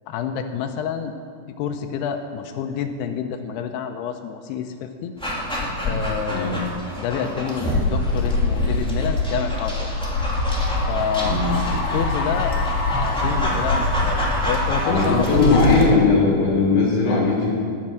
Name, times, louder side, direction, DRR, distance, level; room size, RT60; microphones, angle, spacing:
voice 1, 0.1-1.1 1.6-5.1 5.8-6.7 7.0-9.9 10.9-11.4 11.7-12.6 13.0-15.5, left 8 dB, 85° left, 6 dB, 2.4 m, -28 dB
Dog, 5.2-15.9, equal, 10° left, 0.3 m, -29 dB
voice 2, 6.3-6.6 11.2-11.7 14.8-17.5, left 3 dB, 60° left, -4 dB, 5.1 m, -19 dB
sound 1, 7.7-15.8, left 3 dB, 45° left, 3.1 m, -24 dB
19.0 x 6.7 x 7.5 m, 2.2 s
omnidirectional pair, 5.5 m